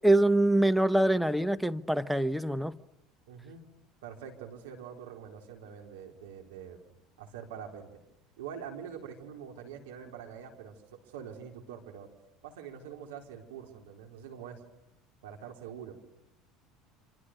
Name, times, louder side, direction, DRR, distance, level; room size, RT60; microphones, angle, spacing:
voice 1, 0.0-2.7, right 1 dB, ahead, 0.9 m, -24 dB
voice 2, 3.3-3.6 4.0-6.8 7.2-7.9 8.4-10.7 11.0-12.1 12.4-14.6 15.2-15.9, right 8 dB, 80° right, 4.0 m, -44 dB
29.5 x 26.5 x 6.7 m
hypercardioid pair, 75°, 0 cm